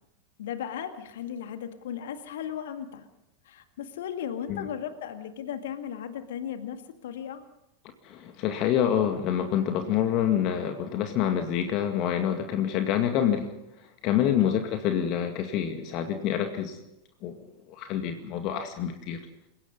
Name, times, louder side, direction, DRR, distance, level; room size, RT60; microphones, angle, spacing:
voice 1, 0.4-3.1 3.5-7.4 14.4-14.7, left 9 dB, 60° left, 8 dB, 2.0 m, -36 dB
voice 2, 8.0-13.5 14.0-16.8 17.2-19.2, left 9 dB, 40° left, 6 dB, 2.1 m, -27 dB
28.0 x 17.0 x 5.4 m, 0.86 s
figure-of-eight pair, 85°, 0 cm